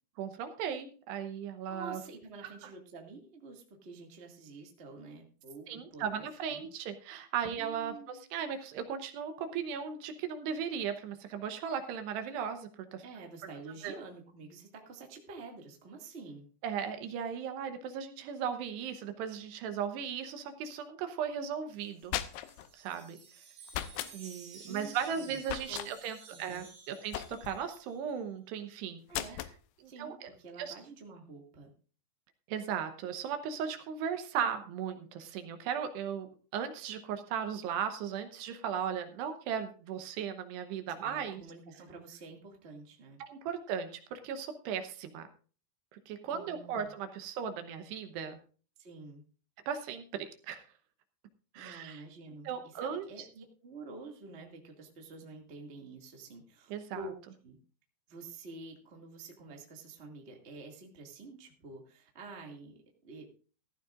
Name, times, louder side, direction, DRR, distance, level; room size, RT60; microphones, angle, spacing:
voice 1, 0.2-2.0 5.7-13.0 13.8-14.0 16.6-22.2 22.7-23.2 24.1-29.0 30.0-30.3 30.6-30.7 32.5-36.3 36.5-41.4 43.2-45.3 45.9-48.4 49.7-50.6 51.5-52.0 52.5-53.1 56.7-57.1, right 7 dB, 75° right, 8 dB, 2.9 m, -37 dB
voice 2, 1.7-6.7 7.4-8.2 13.0-16.5 24.5-25.4 25.7-25.9 26.3-26.7 29.1-29.4 29.8-31.7 41.0-43.2 46.3-46.9 48.8-49.2 51.5-57.1 57.4-57.6 58.1-63.2, right 3 dB, 40° right, 1 dB, 0.9 m, -48 dB
sound 1, 21.8-22.7 23.7-24.1 25.4-25.9 27.1-27.6 29.1-29.6, left 13 dB, 80° left, 2.4 m, -37 dB
Wind chime, 22.0-28.2, right 5 dB, 55° right, 4.7 m, -54 dB
15.0 x 14.5 x 2.5 m, 0.38 s
omnidirectional pair, 5.3 m